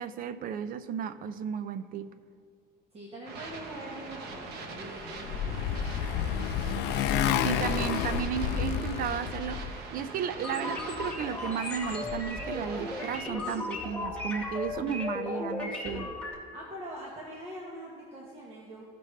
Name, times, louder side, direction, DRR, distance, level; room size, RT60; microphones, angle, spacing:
voice 1, 0.0-2.1 7.4-16.1, right 8 dB, 55° right, 14 dB, 0.5 m, -34 dB
voice 2, 2.9-6.2 16.5-18.8, right 1 dB, 35° right, -3 dB, 1.4 m, -44 dB
sound 1, 3.2-13.2, right 4 dB, 75° right, 1.0 m, -42 dB
Motorcycle, 4.8-9.8, left 9 dB, 80° left, 0.5 m, -30 dB
sound 2, 10.4-16.3, left 2 dB, 5° left, 1.7 m, -36 dB
15.5 x 5.2 x 3.2 m, 2.2 s
cardioid pair, 110°, 17 cm